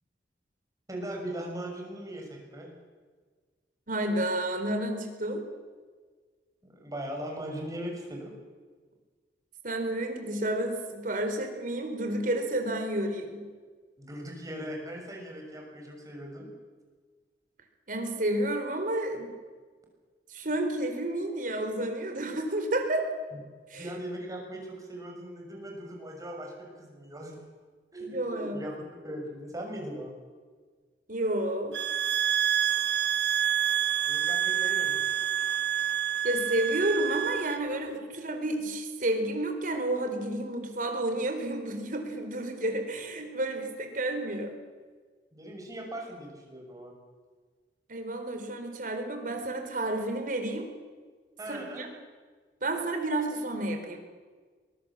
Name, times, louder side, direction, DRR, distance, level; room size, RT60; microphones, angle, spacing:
voice 1, 0.9-2.7 6.6-8.3 14.0-16.5 23.7-27.4 27.9-28.7 29.0-30.1 34.1-35.1 45.3-46.9 51.4-51.9, right 1 dB, 20° right, 1 dB, 6.3 m, -39 dB
voice 2, 3.9-5.4 9.6-13.4 17.9-19.3 20.3-23.1 23.7-23.9 28.0-28.6 31.1-31.8 36.2-44.6 47.9-50.7 51.5-51.9 52.6-54.0, right 1 dB, 50° right, 5 dB, 4.2 m, -30 dB
sound 1, 31.7-37.6, right 10 dB, 70° right, 0.8 m, -27 dB
23.0 x 22.0 x 7.4 m, 1.5 s
head